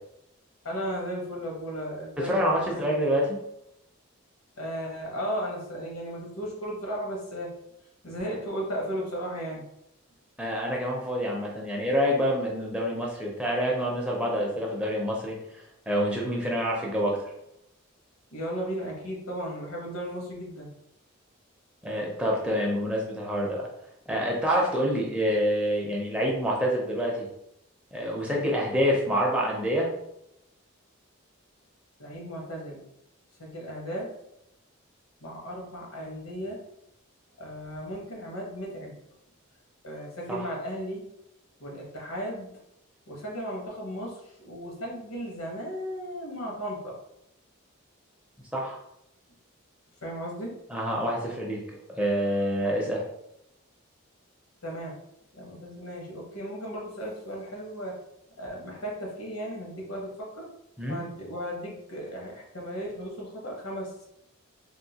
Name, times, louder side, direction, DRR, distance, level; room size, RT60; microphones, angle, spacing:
voice 1, 0.6-2.8 4.6-7.5 8.0-9.6 18.3-20.7 32.0-32.8 33.4-34.1 35.2-36.6 37.4-39.0 39.8-41.0 41.6-42.6 43.1-47.0 50.0-50.5 54.6-55.0 55.3-58.0 58.4-60.5 60.8-64.1, equal, 80° left, -1 dB, 1.1 m, -35 dB
voice 2, 2.2-3.4 10.4-17.2 21.8-23.7 24.1-27.3 27.9-29.9 40.3-40.4 48.5-48.8 50.7-51.6 52.0-53.0 60.8-61.0, equal, 5° right, -3 dB, 0.5 m, -27 dB
3.6 x 2.5 x 2.8 m, 0.81 s
head